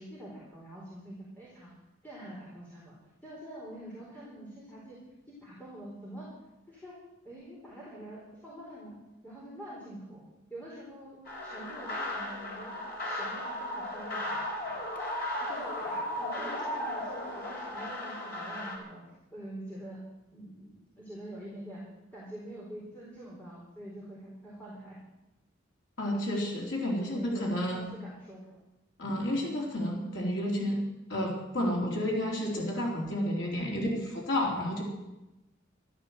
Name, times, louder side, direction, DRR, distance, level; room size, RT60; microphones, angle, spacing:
voice 1, 0.0-1.7 2.0-2.9 3.2-5.0 5.3-6.3 6.7-6.9 7.2-9.0 9.2-10.2 10.5-12.8 13.0-14.4 14.7-14.8 15.4-19.0 19.3-20.0 20.3-21.8 22.1-25.0 27.0-27.4 27.7-28.6, right 1 dB, 10° left, -7 dB, 4.3 m, -45 dB
sound 1, 11.2-18.8, left 1 dB, 50° left, 4.2 m, -36 dB
voice 2, 26.0-27.9 29.0-30.8 31.1-34.8, left 1 dB, 65° left, -3 dB, 3.8 m, -31 dB
13.5 x 13.0 x 7.9 m, 1.0 s
head